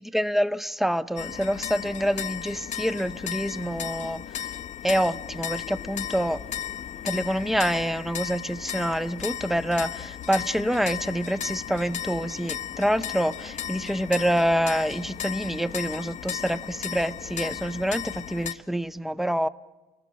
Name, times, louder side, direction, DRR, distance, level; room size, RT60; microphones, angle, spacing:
voice 1, 0.1-4.2 4.8-6.4 7.0-19.5, equal, ahead, 15 dB, 0.6 m, -26 dB
sound 1, 1.2-18.5, left 10 dB, 45° left, 0.8 m, -35 dB
28.5 x 18.5 x 7.0 m, 1.2 s
cardioid pair, 110°, 17 cm